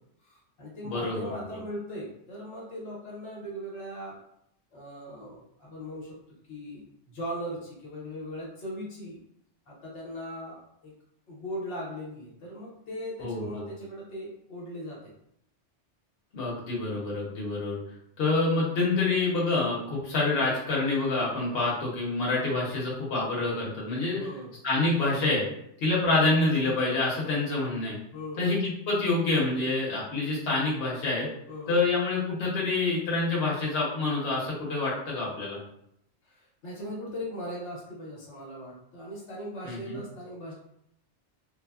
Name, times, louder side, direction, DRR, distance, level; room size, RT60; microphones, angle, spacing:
voice 1, 0.2-4.2 4.7-6.2 6.5-9.2 9.7-10.9 11.3-15.1 17.3-17.4 24.2-24.5 28.1-28.5 31.5-31.8 36.2-40.5, equal, 85° left, -4 dB, 1.2 m, -39 dB
voice 2, 0.8-1.3 13.2-13.7 16.3-17.8 18.2-24.2 24.6-25.4 25.8-28.0 28.4-31.3 31.7-35.6 39.6-40.0, left 3 dB, 60° left, -5 dB, 1.0 m, -27 dB
3.3 x 2.0 x 2.3 m, 0.74 s
omnidirectional pair, 1.2 m